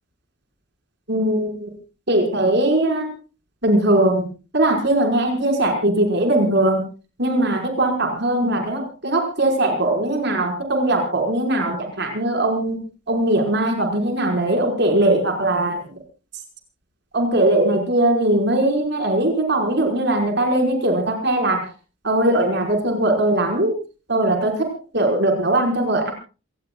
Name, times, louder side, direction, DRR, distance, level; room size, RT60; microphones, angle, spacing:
voice 1, 1.1-1.7 2.1-3.1 3.6-4.3 4.5-6.8 7.2-12.8 13.1-15.8 17.1-21.6 22.0-23.7 24.1-24.7 24.9-26.1, right 1 dB, 55° right, 3 dB, 5.3 m, -20 dB
27.0 x 18.5 x 2.4 m, 0.34 s
head